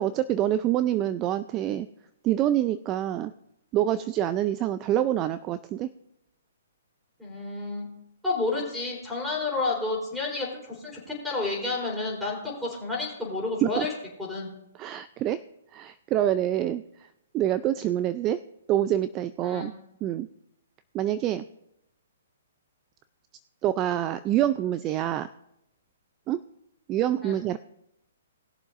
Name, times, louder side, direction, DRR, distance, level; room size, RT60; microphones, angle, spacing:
voice 1, 0.0-1.9 2.2-3.3 3.7-5.9 13.6-13.9 14.8-15.4 15.7-16.8 17.3-18.4 18.7-19.7 20.0-20.3 20.9-21.4 23.6-25.3 26.3-26.4 26.9-27.6, right 12 dB, 25° right, 14 dB, 0.4 m, -26 dB
voice 2, 7.2-7.9 8.2-13.9 14.2-14.5 19.4-19.7 27.2-27.3, left 3 dB, ahead, -2 dB, 3.9 m, -30 dB
20.0 x 7.2 x 2.6 m, 0.84 s
hypercardioid pair, 140°, 0 cm